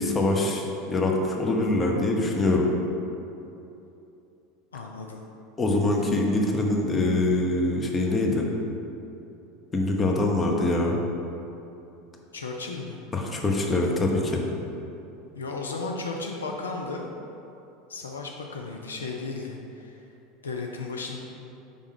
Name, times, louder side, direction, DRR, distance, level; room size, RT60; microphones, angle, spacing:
voice 1, 0.0-2.7 5.6-8.5 9.7-11.0 13.1-14.4, left 2 dB, 20° left, 0 dB, 0.9 m, -24 dB
voice 2, 4.7-5.2 12.3-13.0 15.3-17.1 17.9-20.0 20.4-21.2, left 3 dB, 80° left, 1 dB, 0.4 m, -34 dB
5.4 x 3.5 x 5.0 m, 2.9 s
figure-of-eight pair, 80°, 0 cm